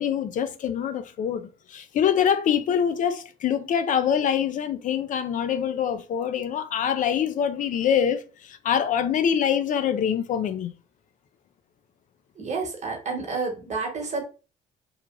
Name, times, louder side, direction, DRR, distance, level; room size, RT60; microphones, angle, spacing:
voice 1, 0.0-10.7, left 8 dB, 50° left, 0.4 m, -25 dB
voice 2, 12.4-14.2, right 4 dB, 45° right, 1.1 m, -30 dB
2.9 x 2.3 x 2.4 m
supercardioid pair, 70°, 17 cm